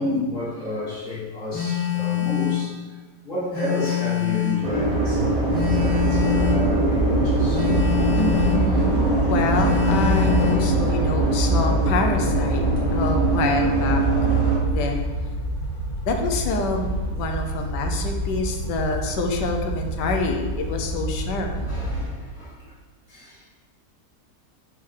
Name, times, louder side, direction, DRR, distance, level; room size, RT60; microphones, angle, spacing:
voice 1, 0.0-3.0 3.2-7.7 21.6-22.7 23.1-23.5, left 1 dB, 50° left, -8 dB, 2.0 m, -31 dB
Telephone, 1.5-2.7 3.5-4.7 5.5-6.7 7.5-8.7 9.5-10.7, left 12 dB, 5° left, 1.6 m, -25 dB
sound 1, 4.6-14.6, right 3 dB, 25° right, 1.1 m, -22 dB
sound 2, 5.5-22.0, equal, 70° left, 1.9 m, -28 dB
voice 2, 8.1-12.6 12.9-15.0 16.1-21.5, left 3 dB, 85° left, 3 dB, 1.3 m, -27 dB
6.2 x 4.3 x 3.7 m, 1.3 s
omnidirectional pair, 1.8 m